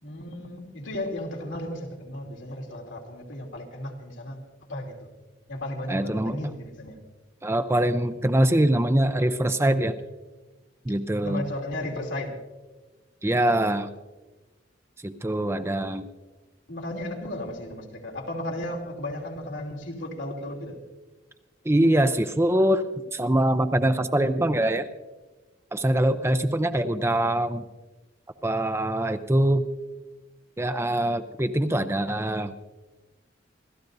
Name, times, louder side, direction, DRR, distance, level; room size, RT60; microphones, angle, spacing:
voice 1, 0.0-4.4 4.7-5.1 5.5-7.0 11.2-12.3 16.7-20.7, left 1 dB, 85° left, 0 dB, 3.0 m, -34 dB
voice 2, 5.9-6.4 7.4-9.9 10.9-11.4 13.2-13.9 15.0-16.1 21.7-22.9 23.1-24.9 25.7-27.7 28.4-29.6 30.6-32.5, right 1 dB, 15° right, 9 dB, 0.5 m, -23 dB
27.5 x 13.5 x 2.7 m, 1.2 s
head